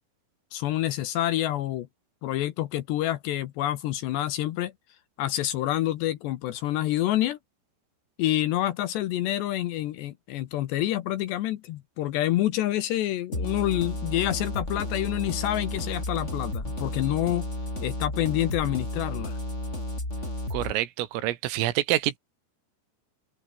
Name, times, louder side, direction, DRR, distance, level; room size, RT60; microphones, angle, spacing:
voice 1, 0.5-1.9 2.2-4.7 5.2-7.4 8.2-17.5 17.8-19.4, left 14 dB, 70° left, 2.8 m, -27 dB
sound 1, 13.3-20.7, left 1 dB, 15° left, 7.4 m, -32 dB
voice 2, 20.5-22.2, right 15 dB, 80° right, 4.1 m, -27 dB
open air
omnidirectional pair, 5.9 m